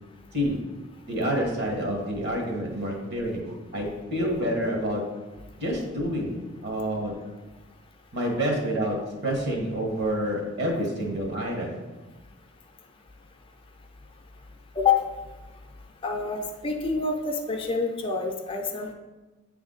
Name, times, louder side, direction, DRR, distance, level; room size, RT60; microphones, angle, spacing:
voice 1, 1.1-5.0 5.6-6.4 6.6-7.2 8.1-9.0 9.2-11.8, equal, 60° right, -1 dB, 1.5 m, -28 dB
voice 2, 16.0-18.9, left 5 dB, 25° left, 3 dB, 0.5 m, -27 dB
8.1 x 3.5 x 3.9 m, 1.2 s
head